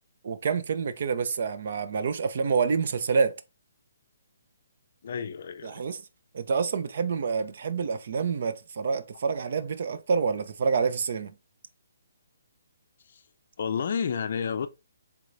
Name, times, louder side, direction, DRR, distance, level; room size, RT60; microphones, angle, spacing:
voice 1, 0.2-3.4 5.6-6.0 6.3-11.3, right 5 dB, 50° right, 0.5 m, -27 dB
voice 2, 5.0-5.8 13.1-13.2 13.6-14.7, left 6 dB, 50° left, 0.4 m, -30 dB
4.7 x 3.5 x 2.6 m
hypercardioid pair, 170°, 0 cm